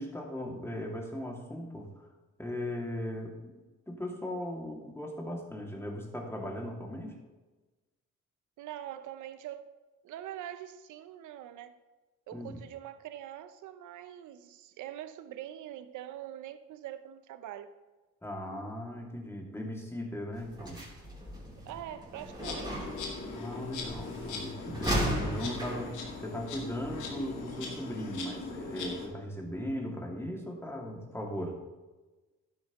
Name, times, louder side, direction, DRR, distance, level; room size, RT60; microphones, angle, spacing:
voice 1, 0.0-1.9 2.4-3.5 3.9-7.2 12.3-12.6 18.2-20.8 23.3-31.6, left 1 dB, 10° left, 0 dB, 2.4 m, -38 dB
voice 2, 8.6-9.7 10.0-11.8 12.3-17.7 21.6-22.9, right 11 dB, 80° right, 11 dB, 0.7 m, -44 dB
sound 1, 20.3-27.6, right 1 dB, 15° right, 3.5 m, -37 dB
Insect, 22.4-29.1, left 3 dB, 90° left, 2.3 m, -40 dB
12.0 x 10.5 x 3.1 m, 1.2 s
cardioid pair, 90°, 30 cm